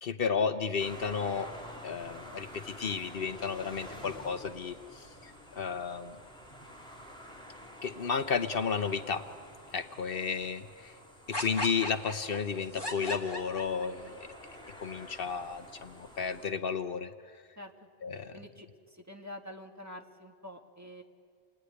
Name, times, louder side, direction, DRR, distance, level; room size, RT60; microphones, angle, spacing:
voice 1, 0.0-1.5 1.8-6.2 7.8-9.3 9.7-11.0 11.3-14.3 14.8-17.1 18.0-18.4, left 5 dB, 65° left, 10 dB, 1.1 m, -33 dB
sound 1, 0.8-16.5, left 1 dB, 5° left, 3.5 m, -49 dB
sound 2, 11.3-14.1, left 1 dB, 25° left, 2.4 m, -37 dB
voice 2, 18.3-21.0, left 1 dB, 15° right, 3 dB, 1.8 m, -47 dB
28.5 x 20.0 x 9.9 m, 2.2 s
omnidirectional pair, 1.1 m